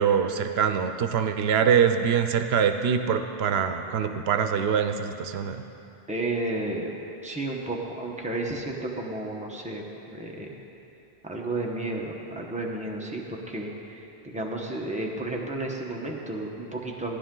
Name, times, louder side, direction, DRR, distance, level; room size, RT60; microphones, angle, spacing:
voice 1, 0.0-5.6, right 7 dB, 80° right, 8 dB, 0.8 m, -24 dB
voice 2, 6.1-7.0 7.2-10.5 11.2-17.2, right 2 dB, 10° right, -1 dB, 0.9 m, -32 dB
15.0 x 10.0 x 3.8 m, 2.8 s
omnidirectional pair, 1.0 m